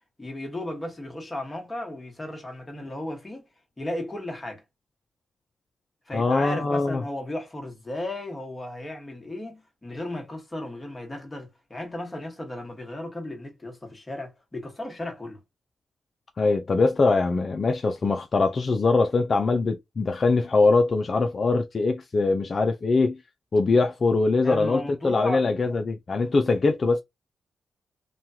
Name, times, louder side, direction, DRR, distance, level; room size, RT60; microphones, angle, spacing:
voice 1, 0.2-3.4 3.8-4.6 6.1-15.4 24.4-25.5 26.1-26.2, left 1 dB, 20° left, 1.3 m, -35 dB
voice 2, 6.1-7.0 16.4-23.2 23.5-27.0, left 3 dB, 45° left, 0.4 m, -22 dB
3.0 x 2.3 x 2.7 m
cardioid pair, 70°, 0 cm